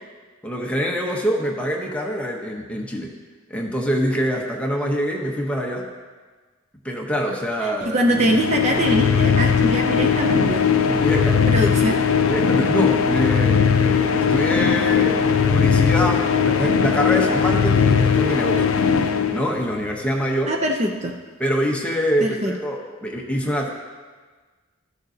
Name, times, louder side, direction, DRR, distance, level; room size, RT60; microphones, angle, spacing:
voice 1, 0.4-3.2 3.5-5.9 6.8-8.0 10.8-11.6 12.3-18.7 19.3-20.6 21.4-23.7, equal, 5° left, -1 dB, 0.8 m, -25 dB
voice 2, 7.6-10.6 11.5-12.0 20.5-21.1 22.2-22.5, right 1 dB, 35° right, 2 dB, 0.5 m, -23 dB
sound 1, 8.1-19.9, left 6 dB, 75° left, 0.5 m, -19 dB
13.0 x 6.7 x 2.8 m, 1.4 s
head